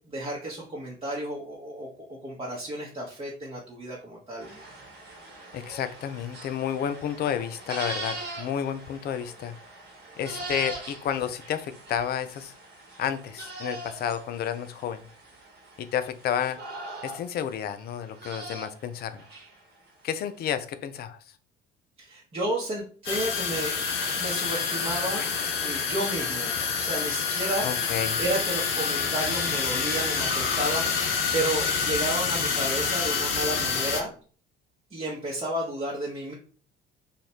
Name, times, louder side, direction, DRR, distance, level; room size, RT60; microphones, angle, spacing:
voice 1, 0.0-4.5 22.0-23.8 24.1-25.3 25.6-27.7 28.2-34.1 34.9-36.3, right 1 dB, 20° right, -5 dB, 0.9 m, -32 dB
sound 1, 4.4-19.6, right 2 dB, 35° right, 1.2 m, -41 dB
voice 2, 5.5-9.5 10.2-12.5 13.0-15.0 15.8-16.6 17.0-19.2 20.0-21.2 25.2-25.3 27.6-28.2, left 9 dB, 35° left, 11 dB, 0.4 m, -31 dB
sound 2, 23.1-34.0, left 5 dB, 75° left, 0.6 m, -27 dB
3.0 x 2.4 x 4.3 m, 0.42 s
figure-of-eight pair, 50°, 29 cm